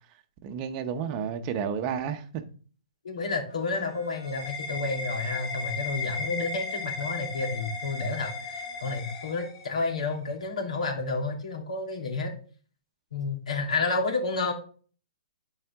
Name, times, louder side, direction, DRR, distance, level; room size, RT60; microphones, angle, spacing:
voice 1, 0.4-2.4 3.8-3.9, right 7 dB, 25° right, 0.8 m, -31 dB
voice 2, 3.0-12.3 13.1-14.5, left 3 dB, 75° left, 2.9 m, -30 dB
sound 1, 3.5-10.0, left 3 dB, 35° left, 1.1 m, -36 dB
11.0 x 4.9 x 3.5 m
hypercardioid pair, 165°, 4 cm